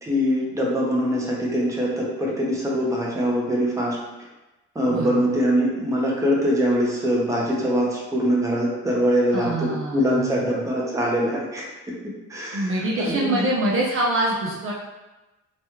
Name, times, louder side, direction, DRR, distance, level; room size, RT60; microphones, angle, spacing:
voice 1, 0.0-4.0 4.7-11.9 12.3-13.4, equal, 10° right, -4 dB, 0.7 m, -23 dB
voice 2, 4.9-5.2 9.3-10.4 12.5-14.7, right 1 dB, 45° right, -4 dB, 0.6 m, -25 dB
3.0 x 2.3 x 3.0 m, 1.1 s
cardioid pair, 90°, 30 cm